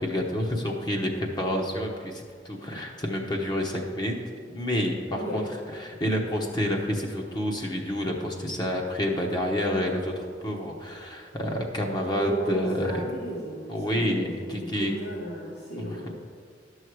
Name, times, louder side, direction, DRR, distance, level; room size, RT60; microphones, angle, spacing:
voice 1, 0.0-4.2 4.5-5.4 5.7-13.0 13.7-14.9 15.8-16.1, equal, 25° left, 0 dB, 0.9 m, -29 dB
voice 2, 5.1-5.5 12.1-16.1, right 1 dB, 80° left, -10 dB, 2.6 m, -34 dB
12.0 x 6.4 x 4.7 m, 2.1 s
head